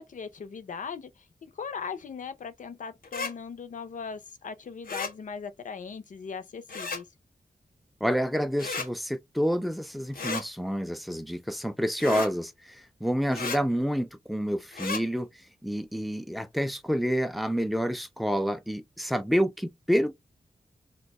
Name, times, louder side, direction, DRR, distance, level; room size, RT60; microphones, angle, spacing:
voice 1, 0.0-7.0, left 6 dB, 60° left, 0.5 m, -39 dB
sound 1, 3.0-3.3 4.8-5.1 6.7-7.0 8.6-8.9 10.1-10.4 12.0-12.3 13.3-13.6 14.7-15.0, left 4 dB, 85° left, 0.9 m, -33 dB
voice 2, 8.0-15.3 15.6-20.1, equal, ahead, 0.3 m, -28 dB
2.6 x 2.2 x 3.9 m
wide cardioid pair, 145°, 15 cm